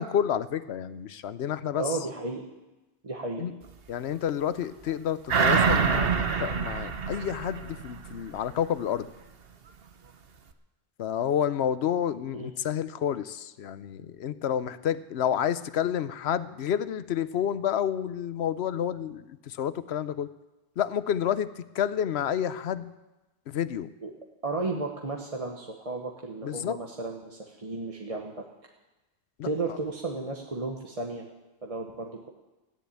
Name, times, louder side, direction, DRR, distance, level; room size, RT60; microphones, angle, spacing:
voice 1, 0.0-1.9 3.4-3.5 3.9-9.1 11.0-20.3 20.8-22.9 23.5-23.9 26.4-26.8 29.4-29.5, left 9 dB, 80° left, 14 dB, 1.0 m, -29 dB
voice 2, 1.8-2.4 3.0-3.5 12.3-12.5 24.0-24.1 24.4-28.5 29.4-31.3 31.6-32.3, right 3 dB, 35° right, 0 dB, 1.2 m, -33 dB
sound 1, 5.3-8.2 8.6-8.7, right 6 dB, 65° right, 1.1 m, -25 dB
15.0 x 10.5 x 8.4 m, 1.1 s
omnidirectional pair, 1.1 m